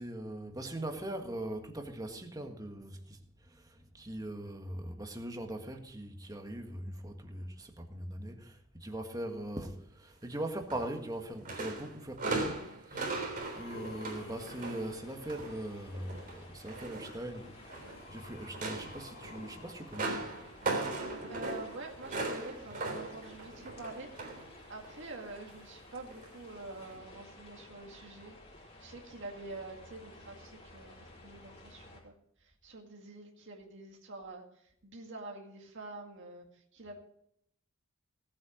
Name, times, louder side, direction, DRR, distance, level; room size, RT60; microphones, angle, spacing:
voice 1, 0.0-20.2, right 1 dB, 15° right, 1.7 m, -41 dB
sound 1, 10.7-11.2 11.4-15.6 15.9-18.0 18.4-24.5 24.8-25.1 26.1-26.3 26.9-27.0, right 2 dB, 40° right, 3.7 m, -38 dB
sound 2, 12.4-12.5 13.0-15.8 17.0-20.9 21.9-22.0, left 2 dB, 50° left, 2.0 m, -52 dB
sound 3, 12.9-32.0, left 1 dB, 30° left, 4.5 m, -54 dB
voice 2, 21.3-24.1 24.7-32.1 32.4-37.0, right 2 dB, 60° right, 2.1 m, -47 dB
18.0 x 8.7 x 5.1 m
head